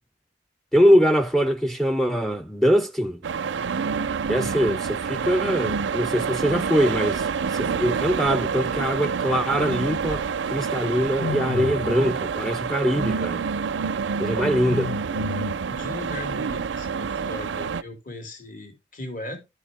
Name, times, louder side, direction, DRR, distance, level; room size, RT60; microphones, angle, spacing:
voice 1, 0.7-3.2 4.3-13.4 14.2-14.9, equal, ahead, 0.4 m, -23 dB
sound 1, 3.2-17.8, right 6 dB, 80° right, 0.5 m, -27 dB
sound 2, 11.2-12.1 14.7-15.9, left 6 dB, 80° left, 0.4 m, -32 dB
voice 2, 15.7-19.4, left 1 dB, 50° left, 2.2 m, -37 dB
11.0 x 6.5 x 3.5 m
head